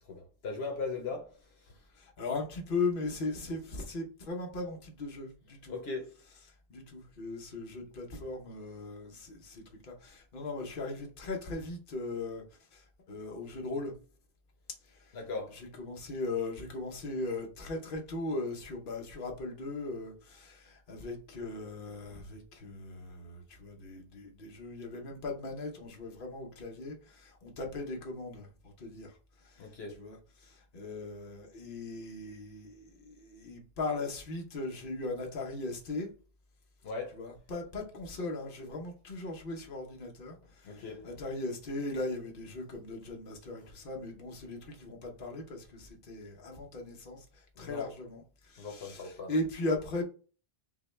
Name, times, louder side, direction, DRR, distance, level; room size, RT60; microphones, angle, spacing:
voice 1, 0.1-1.3 1.6-1.7 5.7-6.1 15.1-15.6 29.6-30.0 36.8-37.2 40.6-41.1 47.6-47.9 48.6-49.4, left 4 dB, 80° left, 1.2 m, -39 dB
voice 2, 1.9-5.8 6.1-6.4 6.7-12.4 12.7-13.9 14.8-15.2 15.5-36.1 37.1-50.0, left 2 dB, 60° left, 1.1 m, -38 dB
5.9 x 2.2 x 3.1 m
omnidirectional pair, 1.0 m